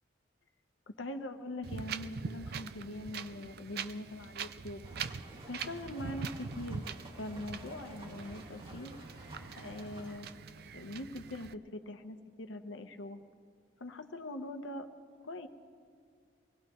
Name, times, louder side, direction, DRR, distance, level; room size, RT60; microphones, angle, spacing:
voice 1, 1.0-4.8 5.4-6.8 7.1-8.9 9.5-10.3 10.7-13.2 13.8-14.9 15.2-15.5, left 1 dB, 90° left, 7 dB, 1.0 m, -42 dB
Wind, 1.6-11.5, right 5 dB, 55° right, 0.4 m, -43 dB
sound 1, 4.8-10.2, right 1 dB, 30° right, 2.1 m, -51 dB
24.5 x 18.0 x 3.1 m, 2.2 s
head